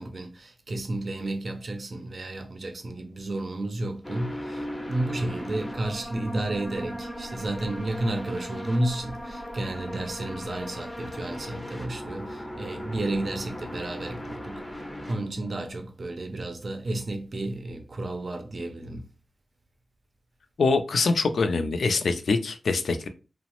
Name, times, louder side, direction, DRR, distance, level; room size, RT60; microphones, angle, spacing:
voice 1, 0.0-19.1, right 1 dB, 50° right, 0.5 m, -32 dB
sound 1, 4.0-15.7, equal, 15° left, 0.5 m, -38 dB
voice 2, 20.6-23.1, left 4 dB, 85° left, 0.3 m, -24 dB
3.0 x 2.0 x 2.9 m
wide cardioid pair, 130°, 0 cm